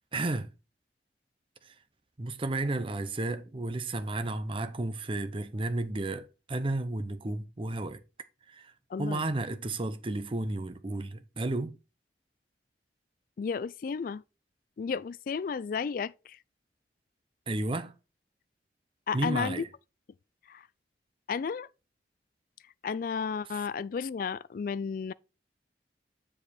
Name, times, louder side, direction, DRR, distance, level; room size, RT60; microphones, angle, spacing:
voice 1, 0.1-0.5 2.2-8.0 8.5-8.7 9.0-11.8 17.5-17.9 19.1-19.7, right 2 dB, 30° right, 0.6 m, -32 dB
voice 2, 8.9-9.2 13.4-14.2 14.8-16.4 19.1-19.6 20.5-20.7 21.3-21.7 22.8-25.1, left 6 dB, 50° left, 0.3 m, -33 dB
7.2 x 4.9 x 4.2 m
head